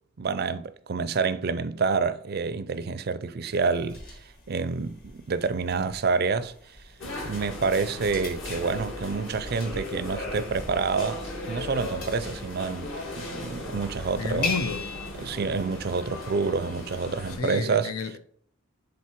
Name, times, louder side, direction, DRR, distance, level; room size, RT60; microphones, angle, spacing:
voice 1, 0.2-6.5 7.2-14.5 15.2-17.9, right 4 dB, 45° right, 0.4 m, -28 dB
sound 1, 3.5-15.1, left 4 dB, 45° left, 1.8 m, -41 dB
sound 2, 7.0-17.4, left 1 dB, 60° left, 2.2 m, -37 dB
voice 2, 14.2-14.9 17.4-18.2, left 4 dB, 90° left, 0.8 m, -31 dB
7.4 x 3.9 x 4.5 m
head